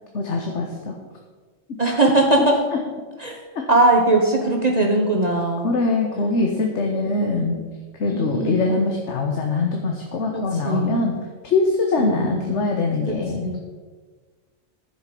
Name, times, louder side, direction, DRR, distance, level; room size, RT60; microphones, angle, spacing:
voice 1, 0.1-1.0 2.4-2.8 3.5-3.6 5.6-7.6 8.0-11.1 11.4-13.6, left 3 dB, 65° left, 2 dB, 1.4 m, -23 dB
voice 2, 1.8-2.6 3.2-3.4 3.7-5.7 7.1-7.6 8.1-8.7 10.3-11.0 12.0-12.6 13.1-13.6, right 2 dB, 35° right, 1 dB, 1.1 m, -21 dB
10.5 x 7.5 x 5.3 m, 1.4 s
omnidirectional pair, 1.3 m